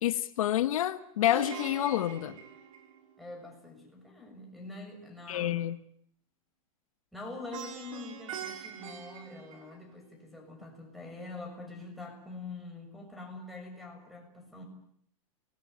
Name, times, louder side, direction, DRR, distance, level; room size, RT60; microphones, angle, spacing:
voice 1, 0.0-2.4 5.3-5.8, left 12 dB, 80° left, 1.5 m, -28 dB
Plucked string instrument, 1.2-3.4 7.5-10.1, right 8 dB, 70° right, 4.6 m, -43 dB
voice 2, 3.2-5.6 7.1-14.6, left 3 dB, ahead, 6.8 m, -45 dB
29.5 x 20.5 x 9.6 m
supercardioid pair, 155°, 18 cm